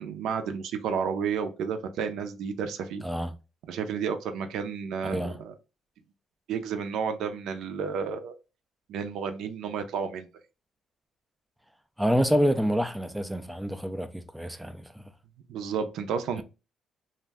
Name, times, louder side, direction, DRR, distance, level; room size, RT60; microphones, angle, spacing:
voice 1, 0.0-3.0 3.7-5.5 6.5-8.4 8.9-10.3 15.5-16.4, right 6 dB, 80° right, 0.4 m, -31 dB
voice 2, 5.0-5.4 12.0-15.0, equal, 5° right, 0.3 m, -27 dB
2.5 x 2.1 x 3.3 m
cardioid pair, 130°, 0 cm